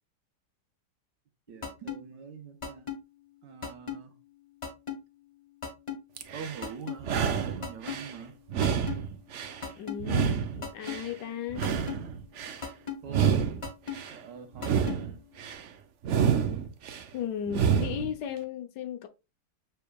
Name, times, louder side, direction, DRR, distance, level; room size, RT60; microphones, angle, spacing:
voice 1, 1.5-2.9 3.4-4.1 6.3-8.3 13.0-13.4 14.1-15.2, right 7 dB, 85° right, 1.5 m, -43 dB
sound 1, 1.6-2.0 2.6-3.0 3.6-4.0 4.6-5.0 5.6-6.0 6.6-7.0 7.6-8.0 8.6-9.0 9.6-10.0 10.6-11.0 11.6-12.0 12.6-13.0 13.6-14.0 14.6-15.0, left 7 dB, 20° left, 1.0 m, -35 dB
sound 2, 6.2-6.6 7.0-8.1 8.5-9.6 10.0-11.1 11.5-12.6 13.1-14.1 14.6-15.6 16.0-17.0 17.5-18.1, right 7 dB, 65° right, 0.7 m, -28 dB
voice 2, 9.6-11.6 17.1-19.1, left 9 dB, 80° left, 1.4 m, -35 dB
6.9 x 3.3 x 2.3 m
omnidirectional pair, 1.8 m